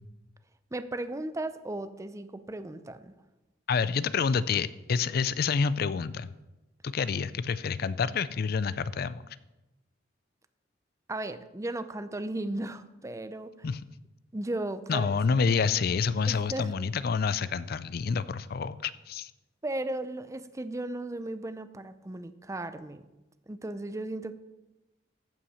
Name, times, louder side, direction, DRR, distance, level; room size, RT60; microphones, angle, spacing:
voice 1, 0.7-3.1 11.1-13.5 14.3-15.2 15.5-15.8 16.3-16.7 19.6-23.0 23.5-24.3, right 2 dB, 15° right, 12 dB, 0.5 m, -36 dB
voice 2, 3.7-6.3 6.8-9.2 13.6-13.8 14.9-19.3, left 5 dB, 55° left, 16 dB, 0.4 m, -28 dB
14.5 x 5.8 x 5.6 m, 1.0 s
head